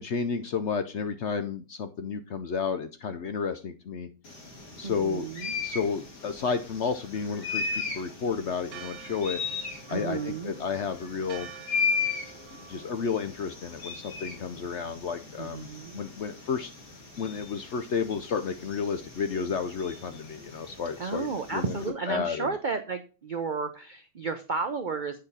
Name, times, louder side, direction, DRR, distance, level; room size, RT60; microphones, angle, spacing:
voice 1, 0.0-4.1 4.8-5.3 5.6-9.4 9.9-11.5 12.5-15.7 15.9-16.7 17.2-21.7 22.1-22.5, left 5 dB, 60° left, 9 dB, 0.7 m, -31 dB
sound 1, 4.2-21.9, left 5 dB, 80° left, 2.7 m, -37 dB
voice 2, 4.8-5.5 9.9-10.5 15.4-16.0 21.0-25.2, right 5 dB, 65° right, 7 dB, 0.4 m, -33 dB
Church bell, 8.7-15.0, right 8 dB, 90° right, 1.4 m, -49 dB
8.6 x 5.3 x 4.1 m, 0.33 s
omnidirectional pair, 1.8 m